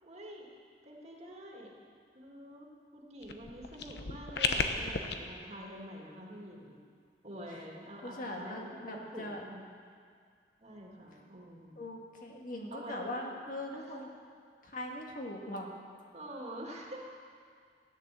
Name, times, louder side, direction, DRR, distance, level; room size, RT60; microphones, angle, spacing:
voice 1, 0.0-0.5 0.8-1.8 2.1-6.8 7.2-9.7 10.6-11.8 12.7-13.1 13.7-13.8 16.1-17.0, equal, 40° right, -1 dB, 2.2 m, -47 dB
sound 1, 3.2-5.1, left 4 dB, 65° left, 1.0 m, -33 dB
voice 2, 8.0-9.4 11.8-14.1 14.6-15.7, left 1 dB, 50° left, 0 dB, 1.9 m, -40 dB
15.5 x 10.0 x 7.6 m, 2.1 s
head